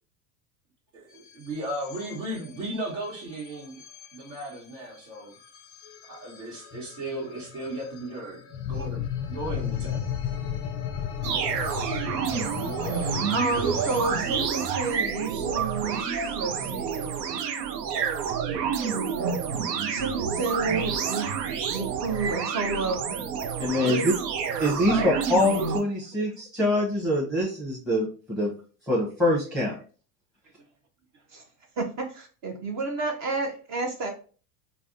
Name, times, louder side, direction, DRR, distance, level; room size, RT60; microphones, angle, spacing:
sound 1, 1.1-14.2, left 9 dB, 30° left, 0.5 m, -36 dB
voice 1, 1.3-3.8 4.1-5.3 6.1-9.0 9.3-10.0, right 1 dB, 60° right, -6 dB, 1.3 m, -35 dB
sound 2, 11.2-25.8, right 7 dB, 90° right, 0.6 m, -29 dB
voice 2, 12.8-17.1 19.9-21.2 21.7-22.9 23.8-24.0 24.9-25.1 31.3-31.4 31.8-34.1, right 3 dB, 35° right, 3 dB, 0.6 m, -30 dB
voice 3, 23.6-24.1 24.6-28.5 28.9-29.8, left 1 dB, ahead, -5 dB, 0.7 m, -24 dB
3.4 x 2.1 x 2.5 m, 0.39 s
hypercardioid pair, 100°, 48 cm